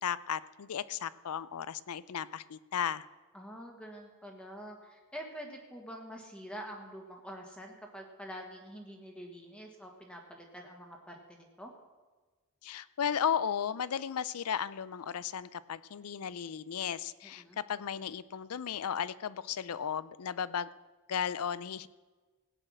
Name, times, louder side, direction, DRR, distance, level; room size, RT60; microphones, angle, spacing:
voice 1, 0.0-3.1 12.6-20.7 21.1-21.9, left 8 dB, 85° left, 18 dB, 0.5 m, -35 dB
voice 2, 3.3-11.7 17.2-17.6, equal, 5° left, 1 dB, 1.5 m, -46 dB
16.5 x 8.9 x 6.3 m, 1.3 s
head